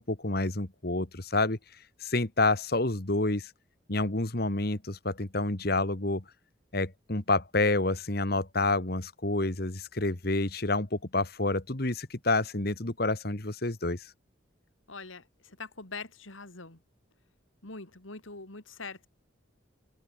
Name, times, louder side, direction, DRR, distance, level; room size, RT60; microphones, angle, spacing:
voice 1, 0.0-1.6 2.0-3.5 3.9-6.2 6.7-14.1, left 2 dB, 50° left, 1.9 m, -28 dB
voice 2, 14.9-16.8 17.6-19.1, left 4 dB, 90° left, 3.8 m, -43 dB
head